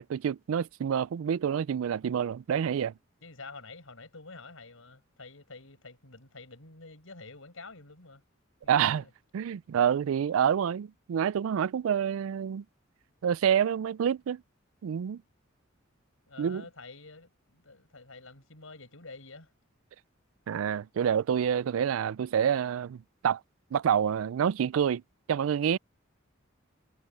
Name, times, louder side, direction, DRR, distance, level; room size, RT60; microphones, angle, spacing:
voice 1, 0.0-2.9 8.7-9.0 9.3-12.6 13.2-14.4 14.8-15.2 16.4-16.6 20.5-23.4 23.7-25.0 25.3-25.8, right 8 dB, 75° right, 0.3 m, -27 dB
voice 2, 3.2-8.2 8.6-9.1 16.3-19.5, left 3 dB, 80° left, 6.1 m, -48 dB
head